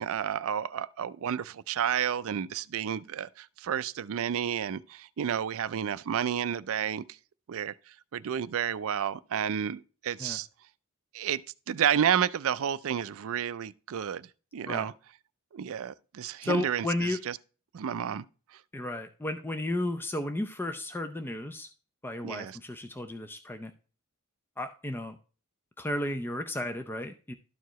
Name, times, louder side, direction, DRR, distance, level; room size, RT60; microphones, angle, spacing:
voice 1, 0.0-7.0 7.5-7.7 8.1-10.5 11.1-11.4 11.7-14.9 15.5-17.4 17.7-18.3 22.2-22.6, right 8 dB, 65° right, 0.4 m, -31 dB
voice 2, 16.4-17.2 18.7-21.7 22.0-23.7 24.6-25.2 25.8-27.3, left 1 dB, 10° left, 0.5 m, -33 dB
12.5 x 4.7 x 3.0 m
head